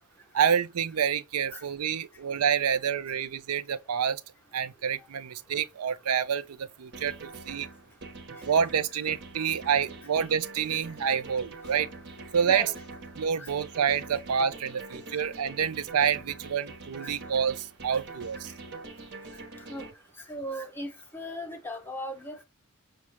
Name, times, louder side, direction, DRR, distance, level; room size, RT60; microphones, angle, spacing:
voice 1, 0.3-4.2 4.5-7.7 8.4-11.9 12.3-12.7 13.2-18.5, right 7 dB, 85° right, 0.5 m, -28 dB
sound 1, 6.9-19.9, right 3 dB, 55° right, 1.1 m, -44 dB
voice 2, 19.3-19.8 20.2-22.4, equal, 10° left, 0.9 m, -38 dB
6.2 x 2.3 x 2.9 m
head